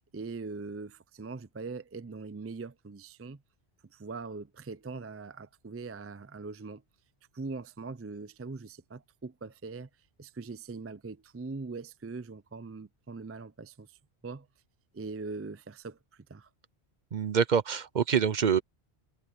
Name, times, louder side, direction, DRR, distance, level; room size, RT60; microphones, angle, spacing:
voice 1, 0.1-3.4 3.9-6.8 7.3-9.9 10.2-14.0 14.2-14.5 14.9-16.5, right 4 dB, 25° right, 0.3 m, -41 dB
voice 2, 17.1-18.6, right 7 dB, 50° right, 0.7 m, -26 dB
omnidirectional pair, 1.1 m